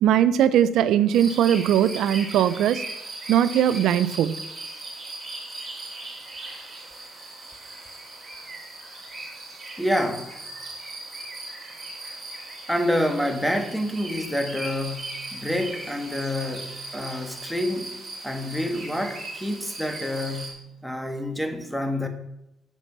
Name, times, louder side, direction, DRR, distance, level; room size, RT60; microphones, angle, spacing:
voice 1, 0.0-2.8 3.3-4.4, right 10 dB, 80° right, 15 dB, 0.5 m, -20 dB
sound 1, 1.1-20.5, right 2 dB, 30° right, 4.1 m, -38 dB
voice 2, 9.8-10.3 12.7-22.1, left 1 dB, ahead, 6 dB, 1.4 m, -28 dB
7.1 x 6.8 x 6.0 m, 0.85 s
cardioid pair, 90°, 0 cm